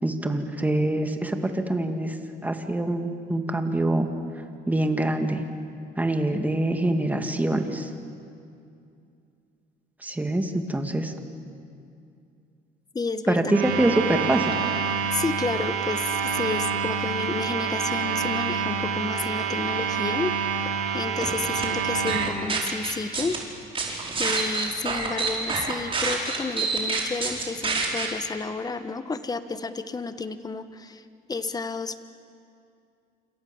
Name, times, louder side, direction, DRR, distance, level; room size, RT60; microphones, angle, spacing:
voice 1, 0.0-2.2 2.4-4.1 4.7-5.4 6.0-7.9 10.0-11.1 13.3-14.6, right 1 dB, 10° right, 5 dB, 2.4 m, -25 dB
voice 2, 12.9-13.4 15.1-20.3 20.6-20.7 20.9-23.4 23.9-32.0, left 4 dB, 20° left, 11 dB, 1.4 m, -31 dB
sound 1, 13.5-22.3, right 7 dB, 85° right, 3.2 m, -27 dB
sound 2, 21.2-21.7 22.1-23.4 23.7-28.1, right 4 dB, 30° right, 5.0 m, -27 dB
27.5 x 27.5 x 7.3 m, 2.5 s
cardioid pair, 110°, 17 cm